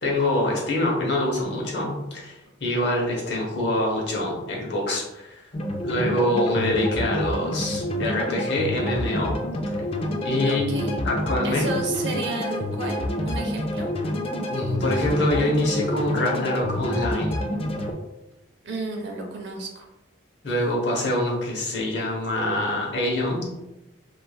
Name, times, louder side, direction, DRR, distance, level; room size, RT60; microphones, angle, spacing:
voice 1, 0.0-5.4 5.8-9.3 10.2-11.7 14.5-17.4 20.4-23.5, left 1 dB, 65° left, -2 dB, 0.8 m, -25 dB
sound 1, 5.5-17.9, left 1 dB, 30° left, 0.3 m, -28 dB
voice 2, 10.5-11.0 11.4-13.9 18.6-19.9, right 2 dB, 70° right, 1 dB, 0.6 m, -32 dB
3.1 x 2.5 x 2.3 m, 0.95 s
head